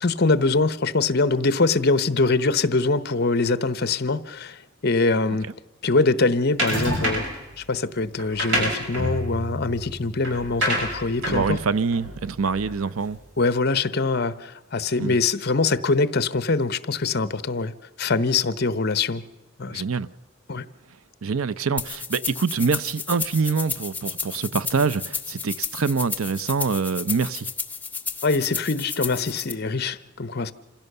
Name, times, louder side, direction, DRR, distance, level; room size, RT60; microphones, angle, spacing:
voice 1, 0.0-5.5 5.8-7.2 7.6-11.6 13.4-17.7 18.0-19.2 19.6-19.8 20.5-20.6 28.2-30.5, left 3 dB, 50° left, 0.9 m, -23 dB
sound 1, 6.6-7.4 8.2-12.9, equal, 60° right, 5.9 m, -28 dB
voice 2, 11.2-13.2 15.0-15.2 19.7-20.1 21.2-27.5, right 5 dB, 80° right, 0.6 m, -25 dB
sound 2, 21.8-29.5, left 5 dB, 10° left, 1.0 m, -32 dB
27.0 x 16.5 x 6.8 m
head